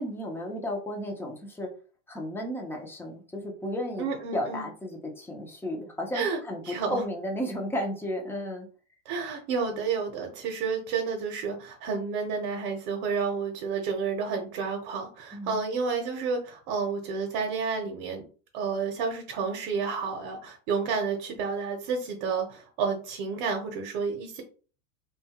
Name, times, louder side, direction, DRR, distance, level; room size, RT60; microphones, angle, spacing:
voice 1, 0.0-1.7 2.1-8.7 15.3-15.6, left 1 dB, 5° left, 1 dB, 0.4 m, -33 dB
voice 2, 4.0-4.7 6.1-6.4 6.6-7.0 9.1-18.2 18.5-24.4, right 5 dB, 50° right, 2 dB, 0.8 m, -30 dB
2.7 x 2.3 x 2.8 m, 0.39 s
supercardioid pair, 125°, 40 cm